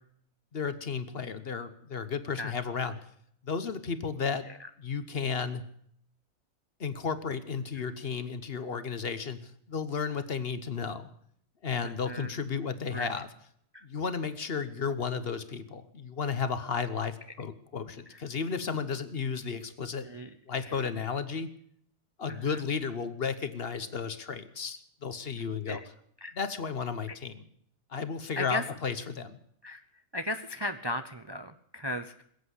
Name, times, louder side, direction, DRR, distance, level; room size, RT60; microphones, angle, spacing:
voice 1, 0.5-3.0 3.4-4.4 4.8-5.6 6.8-11.1 11.6-13.3 13.8-20.1 20.5-21.5 22.2-25.8 26.3-27.4 27.9-29.4, left 5 dB, 50° left, 12 dB, 1.2 m, -33 dB
voice 2, 11.8-12.3 12.9-13.1 13.7-13.8 18.1-18.2 20.0-20.3 20.6-20.8 22.3-22.6 25.7-25.8 26.2-26.3 27.1-27.2 28.4-28.6 29.6-29.8 30.1-32.2, left 1 dB, 30° right, 9 dB, 0.5 m, -36 dB
21.0 x 8.4 x 8.2 m, 0.67 s
omnidirectional pair, 1.4 m